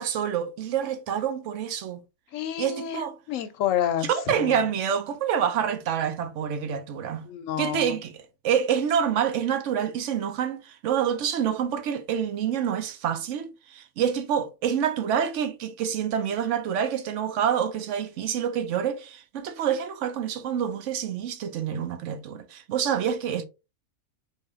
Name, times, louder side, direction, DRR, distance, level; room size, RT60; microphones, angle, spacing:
voice 1, 0.0-2.0 2.6-3.1 4.1-7.3 7.6-8.1 8.4-23.4, right 8 dB, 65° right, 0.9 m, -27 dB
voice 2, 2.3-4.6 7.2-7.9, left 10 dB, 70° left, 0.9 m, -29 dB
3.2 x 2.7 x 3.7 m
omnidirectional pair, 1.5 m